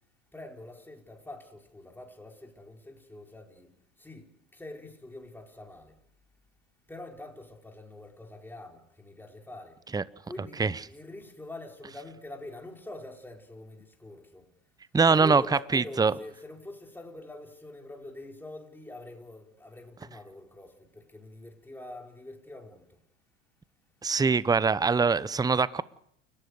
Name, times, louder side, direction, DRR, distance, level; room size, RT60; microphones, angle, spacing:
voice 1, 0.3-3.7 4.0-6.0 6.9-9.8 10.2-14.5 15.1-22.8, left 2 dB, 5° left, 1 dB, 5.0 m, -45 dB
voice 2, 14.9-15.4 15.7-16.1 24.0-25.8, right 4 dB, 10° right, 19 dB, 0.9 m, -23 dB
29.5 x 16.5 x 6.7 m, 0.73 s
hypercardioid pair, 80°, 36 cm